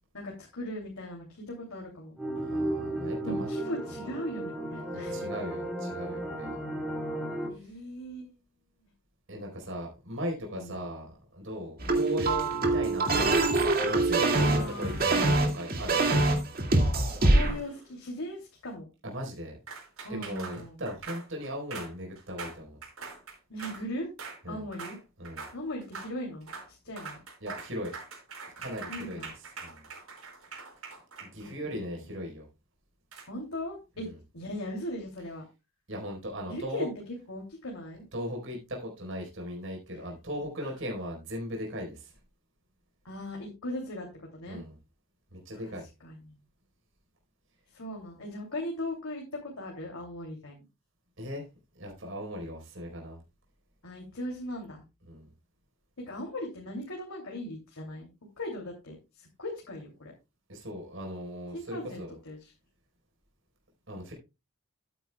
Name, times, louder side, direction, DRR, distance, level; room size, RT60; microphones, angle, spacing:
voice 1, 0.1-2.1 3.2-5.3 7.5-8.3 10.5-10.9 11.8-12.0 14.4-15.4 17.2-18.9 20.0-20.8 23.5-24.1 24.5-25.0 25.5-27.2 28.9-29.3 31.3-31.6 33.3-34.1 34.3-35.4 36.5-36.9 37.3-38.0 43.0-44.6 45.6-45.7 46.0-46.3 47.7-50.6 53.8-54.8 56.1-58.1 58.4-60.1 61.5-62.5, left 1 dB, 75° left, -1 dB, 2.8 m, -38 dB
sound 1, 2.2-7.5, right 1 dB, 5° right, 3.6 m, -34 dB
voice 2, 2.3-3.5 4.9-6.6 9.3-13.5 13.8-16.0 19.0-19.6 20.1-22.8 24.4-24.7 25.2-25.4 27.4-27.9 28.6-29.3 29.6-29.8 31.2-32.5 34.0-34.2 35.9-36.9 38.1-42.1 44.5-44.8 45.3-45.9 51.2-51.5 51.7-53.2 55.1-55.3 60.5-62.2 63.9-64.1, equal, 60° right, 0 dB, 4.2 m, -38 dB
sound 2, 11.8-17.5, right 2 dB, 45° right, 2.2 m, -24 dB
sound 3, 14.2-15.0 17.1-18.0 19.7-23.8 24.2-24.4 24.7-25.0 25.2-25.6 25.8-26.1 26.4-26.7 27.0-31.7 33.1-33.2, right 4 dB, 75° right, 5.1 m, -43 dB
14.0 x 9.2 x 2.3 m, 0.27 s
head